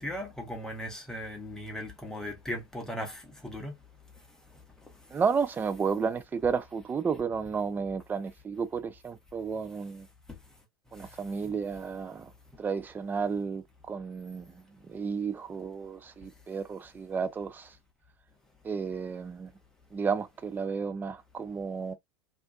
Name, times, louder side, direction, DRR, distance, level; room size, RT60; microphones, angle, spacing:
voice 1, 0.0-3.7, equal, 5° left, 0.8 m, -37 dB
voice 2, 5.1-10.1 10.9-12.3 12.6-17.7 18.6-19.5 19.9-21.9, right 5 dB, 15° right, 0.3 m, -32 dB
2.5 x 2.2 x 2.3 m
figure-of-eight pair, 85°, 14 cm